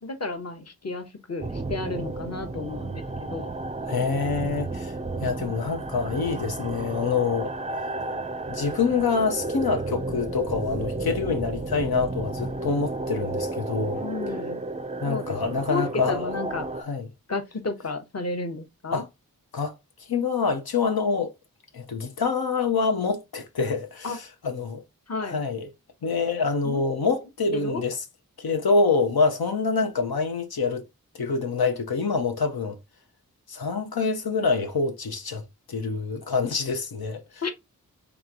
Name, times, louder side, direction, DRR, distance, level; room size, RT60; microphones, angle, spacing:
voice 1, 0.0-3.5 13.9-14.6 15.0-16.7 17.3-19.0 24.0-24.2 25.1-25.4 26.6-26.8 27.5-27.8 37.4-37.5, left 3 dB, 45° left, 0.9 m, -32 dB
sound 1, 1.4-16.8, right 2 dB, 20° right, 0.4 m, -32 dB
voice 2, 3.9-4.9 5.2-7.5 8.5-14.0 15.0-16.3 16.8-17.1 18.9-19.1 19.5-19.7 20.1-21.3 21.7-24.8 25.2-25.7 26.0-28.0 28.4-30.8 31.1-32.8 33.5-35.4 35.7-37.4, left 4 dB, 85° left, 0.7 m, -26 dB
3.5 x 3.0 x 3.7 m
wide cardioid pair, 50°, 36 cm